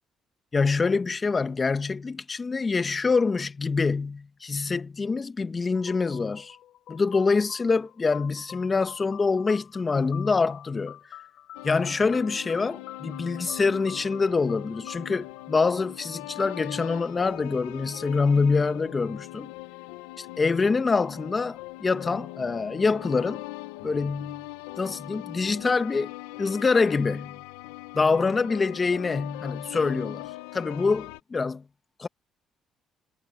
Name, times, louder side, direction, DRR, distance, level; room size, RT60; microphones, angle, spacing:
voice 1, 0.5-6.6 6.9-11.0 11.6-19.5 20.2-23.4 23.8-24.4 24.8-26.1 26.4-27.4 27.9-31.6 32.0-32.1, left 4 dB, 35° left, 1.4 m, -25 dB
sound 1, 5.7-16.4, left 12 dB, 70° left, 6.9 m, -47 dB
sound 2, 11.5-31.2, left 19 dB, 90° left, 1.0 m, -41 dB
supercardioid pair, 60°, 0 cm